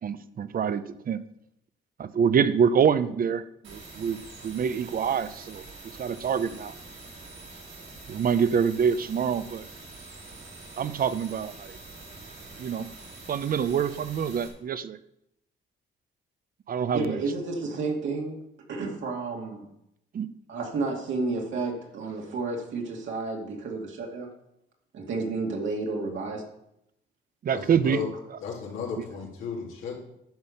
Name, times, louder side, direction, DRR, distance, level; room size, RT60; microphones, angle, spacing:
voice 1, 0.0-1.2 2.0-6.7 8.1-9.7 10.8-11.8 12.6-12.9 13.3-15.0 16.7-17.2 20.1-20.3 27.4-28.0 29.0-29.1, right 7 dB, 45° right, 14 dB, 0.7 m, -26 dB
sound 1, 3.6-14.5, right 3 dB, 90° right, 2.6 m, -45 dB
voice 2, 16.9-18.4 18.7-19.7 20.5-24.3 24.9-26.4, right 3 dB, 70° right, 0 dB, 2.4 m, -31 dB
voice 3, 27.5-28.1 28.4-30.0, left 6 dB, 85° left, -2 dB, 3.0 m, -34 dB
10.5 x 5.5 x 6.6 m, 0.80 s
cardioid pair, 90°, 20 cm